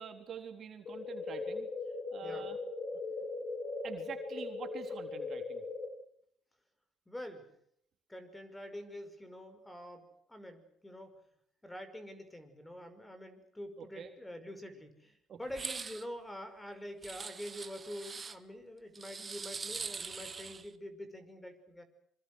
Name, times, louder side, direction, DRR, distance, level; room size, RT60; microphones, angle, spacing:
voice 1, 0.0-1.7 2.1-2.6 3.8-5.6 13.8-14.1 15.3-15.4, right 7 dB, 45° right, 5 dB, 3.8 m, -46 dB
sound 1, 0.9-5.9, left 3 dB, 45° left, 5.5 m, -39 dB
voice 2, 7.1-7.5 8.1-11.2 11.6-21.8, equal, 10° left, 10 dB, 5.4 m, -46 dB
sound 2, 15.5-16.0 17.0-18.4 19.0-20.7, right 5 dB, 30° right, 1.7 m, -42 dB
26.0 x 25.0 x 6.4 m, 0.70 s
cardioid pair, 110°, 0 cm